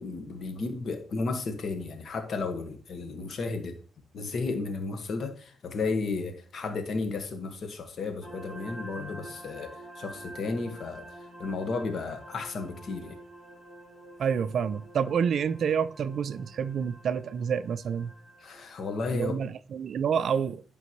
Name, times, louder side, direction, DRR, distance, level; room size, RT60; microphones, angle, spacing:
voice 1, 0.0-3.8 4.1-13.2 18.4-19.3, left 3 dB, 55° left, 1.5 m, -33 dB
sound 1, 8.2-19.0, right 1 dB, 5° right, 4.0 m, -48 dB
voice 2, 14.2-18.1 19.1-20.6, right 7 dB, 60° right, 0.4 m, -28 dB
11.0 x 5.2 x 3.1 m
cardioid pair, 90°, 0 cm